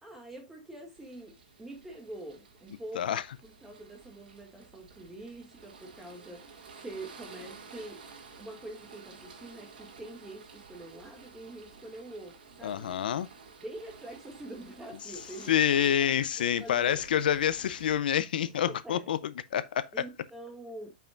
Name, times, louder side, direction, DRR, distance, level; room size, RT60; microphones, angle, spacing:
voice 1, 0.0-8.0 8.4-13.0 13.6-16.1 16.4-17.2 18.4-19.1 19.5-19.6 19.9-20.9, right 1 dB, 5° right, 2.1 m, -45 dB
sound 1, 0.9-18.0, right 5 dB, 90° right, 2.2 m, -52 dB
voice 2, 12.6-13.3 15.5-19.8, left 10 dB, 75° left, 0.5 m, -27 dB
8.8 x 5.7 x 2.5 m
supercardioid pair, 160°, 5 cm